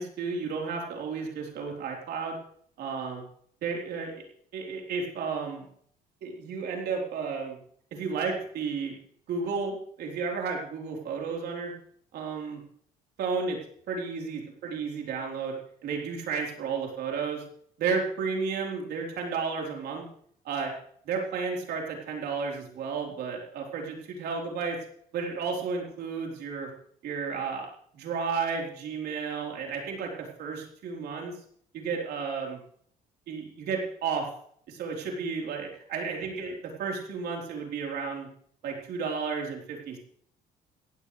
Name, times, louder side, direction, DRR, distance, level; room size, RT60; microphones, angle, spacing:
voice 1, 0.0-2.4 2.8-3.2 3.6-4.1 4.5-5.7 6.2-7.6 7.9-8.9 9.3-11.7 12.1-12.6 13.2-13.6 13.9-15.5 15.8-17.4 17.8-20.0 20.4-20.7 21.0-24.8 25.1-26.7 27.0-27.7 27.9-31.3 31.7-32.6 33.3-34.3 34.7-38.3 38.6-40.0, right 5 dB, 70° right, 0 dB, 3.9 m, -32 dB
16.5 x 15.5 x 3.3 m, 0.62 s
cardioid pair, 110°, 17 cm